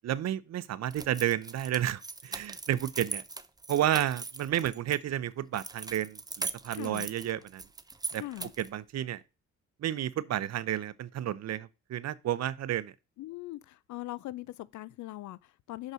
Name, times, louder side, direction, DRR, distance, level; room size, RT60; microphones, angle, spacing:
voice 1, 0.0-3.2 3.7-7.6 8.1-8.2 8.6-9.2 9.8-12.9, right 12 dB, 60° right, 0.7 m, -31 dB
sound 1, 0.9-5.0 5.5-8.7, right 3 dB, 15° right, 0.6 m, -40 dB
voice 2, 6.7-7.1 8.1-8.5 13.2-15.9, left 16 dB, 75° left, 0.5 m, -41 dB
6.0 x 5.4 x 6.3 m
cardioid pair, 90°, 30 cm